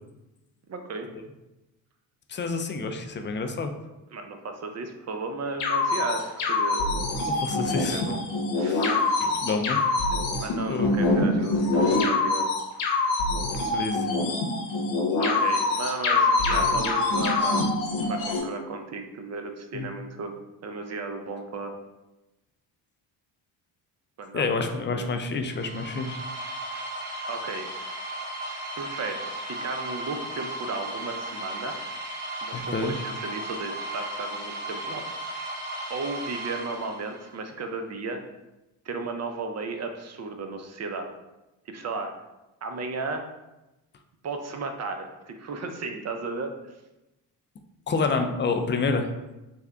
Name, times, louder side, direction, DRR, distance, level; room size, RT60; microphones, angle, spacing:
voice 1, 0.7-1.1 4.1-6.9 7.6-8.2 8.5-8.8 10.3-12.5 15.2-17.7 18.1-20.3 20.6-21.7 24.2-24.6 24.9-25.1 27.3-27.7 28.8-31.7 32.4-35.0 35.9-38.2 38.8-41.1 41.7-42.2 42.6-43.2 44.2-46.7, right 3 dB, 35° right, 5 dB, 0.6 m, -34 dB
voice 2, 2.3-3.7 7.3-8.0 8.6-9.8 10.7-10.9 13.7-14.1 19.7-19.9 24.3-26.2 32.5-32.9 47.9-49.1, left 4 dB, 25° left, 6 dB, 0.4 m, -28 dB
sound 1, 5.6-18.4, left 3 dB, 90° left, 0.8 m, -24 dB
sound 2, 25.5-37.3, right 1 dB, 60° right, 1.0 m, -35 dB
3.4 x 2.2 x 3.7 m, 0.99 s
supercardioid pair, 70°, 44 cm